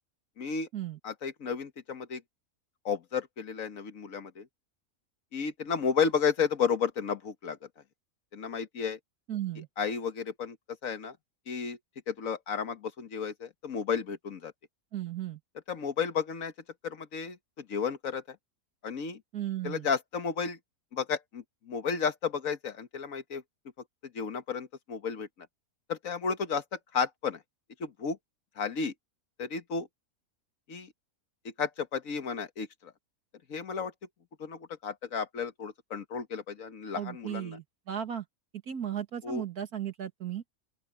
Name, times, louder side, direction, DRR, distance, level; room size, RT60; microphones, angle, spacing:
voice 1, 0.4-0.7 1.0-2.2 2.8-4.5 5.3-7.6 8.3-9.0 9.8-10.6 10.8-11.2 11.5-11.8 12.1-14.5 15.7-16.5 16.8-18.4 18.8-19.2 19.6-20.6 20.9-23.4 24.1-25.3 25.9-27.4 27.8-28.2 28.6-28.9 29.4-29.9 30.7-30.9 31.4-32.9 33.5-33.9 34.4-37.6 39.2-39.4, left 6 dB, 65° left, 1.7 m, -32 dB
voice 2, 9.3-9.7 14.9-15.4 19.3-19.9 36.9-38.3 38.7-40.4, right 10 dB, 80° right, 2.3 m, -35 dB
open air
omnidirectional pair, 1.6 m